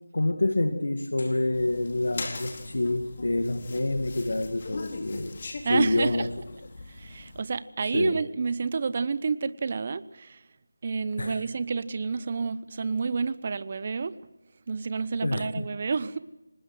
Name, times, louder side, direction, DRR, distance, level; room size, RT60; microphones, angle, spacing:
voice 1, 0.1-5.3 5.7-6.3 7.8-8.2 11.2-11.4 15.2-15.7, left 2 dB, 70° left, 7 dB, 2.1 m, -27 dB
sound 1, 1.5-7.4, left 3 dB, 40° left, 3.8 m, -40 dB
voice 2, 5.6-6.3 6.9-10.4 10.8-14.2 14.7-16.2, right 4 dB, 35° right, 15 dB, 1.0 m, -29 dB
25.5 x 20.0 x 6.2 m, 0.99 s
figure-of-eight pair, 170°, 0 cm